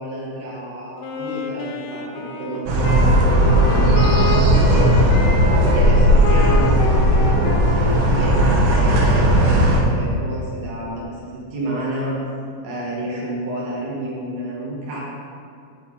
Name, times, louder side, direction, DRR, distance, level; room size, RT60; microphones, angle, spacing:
voice 1, 0.0-4.9 5.5-12.2 12.6-15.0, right 1 dB, 85° right, -5 dB, 0.8 m, -30 dB
Wind instrument woodwind instrument, 1.0-10.0, left 3 dB, 85° left, 2.3 m, -29 dB
sound 1, 2.7-9.8, equal, 70° right, 1.9 m, -16 dB
7.3 x 5.9 x 3.7 m, 2.4 s
omnidirectional pair, 3.7 m